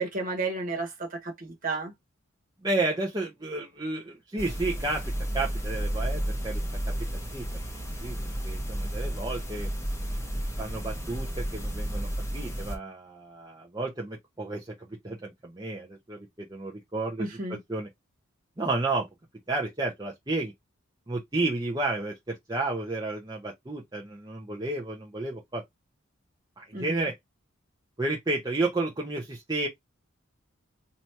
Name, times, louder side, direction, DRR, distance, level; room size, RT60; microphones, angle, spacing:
voice 1, 0.0-1.9 17.2-17.6 26.7-27.1, right 3 dB, 40° right, 1.6 m, -32 dB
voice 2, 2.6-6.9 7.3-7.4 8.0-8.2 8.4-9.7 10.6-17.9 18.6-19.1 19.5-20.5 21.1-25.6 26.6-27.1 28.0-29.7, right 2 dB, 20° right, 0.8 m, -32 dB
sound 1, 4.4-12.8, equal, 15° left, 1.1 m, -32 dB
3.0 x 2.8 x 4.4 m
head